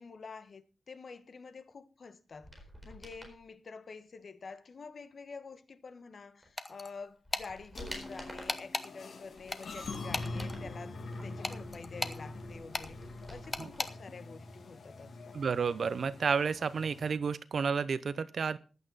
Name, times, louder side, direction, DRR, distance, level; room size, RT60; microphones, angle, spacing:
voice 1, 0.0-2.5 2.8-15.4, left 4 dB, 45° left, 1.2 m, -48 dB
sound 1, 2.4-3.4 6.4-6.5 7.0-8.7 9.2-10.7 11.1-13.8 14.1-14.2, equal, ahead, 4.3 m, -49 dB
sound 2, 6.6-6.9 7.3-7.5 8.5-8.9 9.5-10.5 11.4-12.2 12.7-12.9 13.5-13.9, left 2 dB, 20° left, 0.9 m, -36 dB
sound 3, 7.7-17.1, left 2 dB, 65° left, 2.6 m, -44 dB
voice 2, 15.3-18.6, right 5 dB, 55° right, 0.8 m, -31 dB
15.0 x 11.5 x 4.1 m
wide cardioid pair, 160°, 0 cm